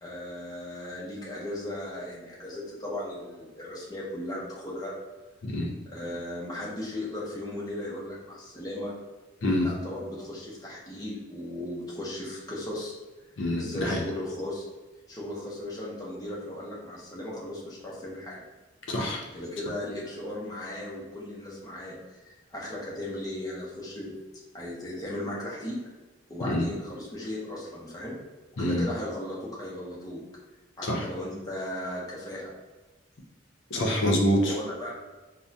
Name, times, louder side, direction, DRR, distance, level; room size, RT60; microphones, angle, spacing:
voice 1, 0.0-4.9 5.9-8.9 9.6-12.9 13.5-14.6 15.1-18.4 19.3-24.1 24.5-25.8 26.3-28.1 28.6-30.2 30.8-32.5 34.4-34.9, left 1 dB, 20° left, -6 dB, 0.6 m, -36 dB
voice 2, 13.4-14.0 18.9-19.2 26.4-26.6 28.6-28.9 30.8-31.0 33.7-34.5, left 1 dB, 75° left, 0 dB, 0.6 m, -26 dB
3.4 x 2.0 x 2.7 m, 1.2 s
head